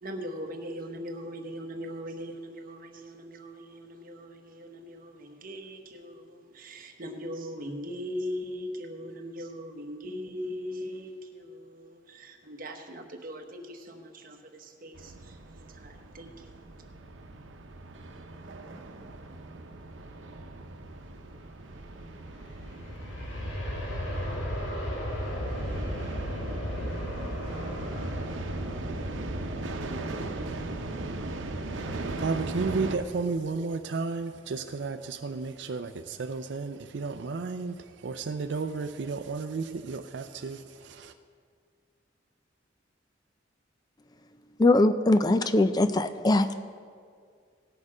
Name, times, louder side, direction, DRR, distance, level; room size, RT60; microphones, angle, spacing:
voice 1, 0.0-16.6, equal, 50° right, 4 dB, 1.1 m, -40 dB
sound 1, 14.9-33.0, right 2 dB, 90° right, 0.8 m, -38 dB
Aircraft, 22.1-32.9 33.3-33.4, equal, 85° left, 2.3 m, -36 dB
voice 2, 32.2-37.8 38.0-41.1, right 4 dB, 65° right, 8 dB, 0.4 m, -33 dB
voice 3, 44.6-46.5, left 2 dB, 20° left, 10 dB, 0.4 m, -22 dB
17.5 x 6.6 x 4.9 m, 2.1 s
head